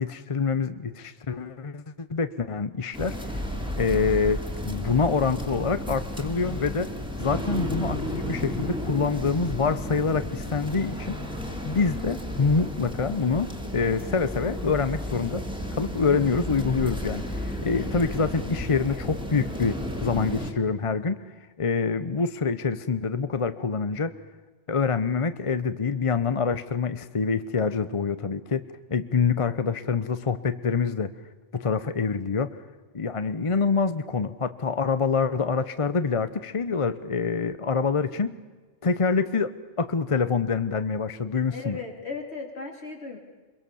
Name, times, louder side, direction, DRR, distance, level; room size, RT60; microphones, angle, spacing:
voice 1, 0.0-3.2 3.8-6.9 7.2-11.2 11.6-15.4 15.7-21.2 21.6-24.1 24.7-28.6 28.9-31.1 31.5-32.6 32.9-38.4 38.8-41.8, left 5 dB, 30° left, 12 dB, 0.7 m, -26 dB
sound 1, 2.9-20.5, left 1 dB, 5° right, 2.5 m, -33 dB
voice 2, 17.6-17.9 41.5-43.2, left 4 dB, 60° left, 2 dB, 3.9 m, -37 dB
25.0 x 22.5 x 7.0 m, 1.3 s
omnidirectional pair, 1.2 m